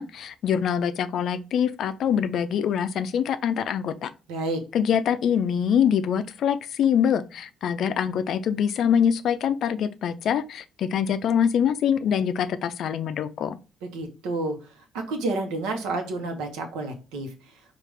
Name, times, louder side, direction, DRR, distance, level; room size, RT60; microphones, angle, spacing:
voice 1, 0.0-4.1 4.7-13.6, left 8 dB, 65° left, 0.4 m, -24 dB
voice 2, 4.3-4.6 13.8-14.6 14.9-17.5, right 2 dB, 85° right, 0.9 m, -30 dB
4.8 x 2.5 x 3.2 m
supercardioid pair, 65°, 0 cm